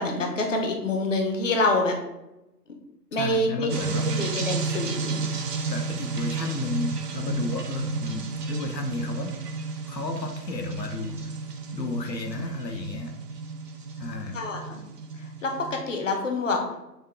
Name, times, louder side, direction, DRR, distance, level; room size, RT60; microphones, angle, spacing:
voice 1, 0.0-2.0 3.1-5.2 14.3-14.8 15.2-16.6, left 2 dB, 50° left, 3 dB, 0.8 m, -27 dB
voice 2, 3.1-4.0 5.7-9.3 9.9-11.1 11.7-13.1 14.0-14.4, left 3 dB, 80° left, 4 dB, 0.7 m, -32 dB
sound 1, 3.7-15.8, right 4 dB, 70° right, 0.7 m, -32 dB
6.4 x 2.3 x 3.3 m, 0.94 s
figure-of-eight pair, 140°, 49 cm